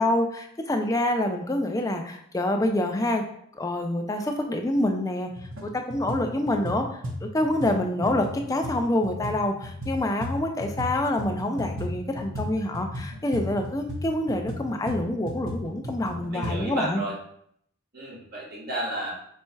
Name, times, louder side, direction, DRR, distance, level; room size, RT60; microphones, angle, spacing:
voice 1, 0.0-3.2 3.6-5.3 5.6-17.0, left 1 dB, 15° left, 4 dB, 0.3 m, -26 dB
sound 1, 4.8-4.9 5.3-5.6 5.9-10.9 11.2-16.6, left 1 dB, 70° right, 0.9 m, -35 dB
voice 2, 16.3-17.1 17.9-19.1, right 1 dB, 45° right, -4 dB, 1.2 m, -32 dB
4.5 x 4.1 x 2.2 m, 0.69 s
head